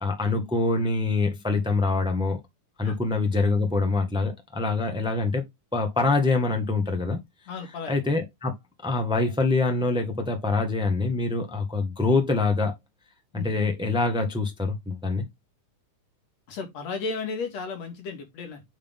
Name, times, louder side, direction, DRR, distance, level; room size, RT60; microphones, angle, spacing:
voice 1, 0.0-2.4 2.8-5.4 5.7-7.2 7.9-8.5 8.8-12.7 13.3-15.2, left 3 dB, 5° right, 0.9 m, -25 dB
voice 2, 7.5-8.0 13.3-13.5 16.5-18.6, left 4 dB, 60° left, 3.2 m, -34 dB
8.4 x 4.1 x 3.7 m
omnidirectional pair, 3.4 m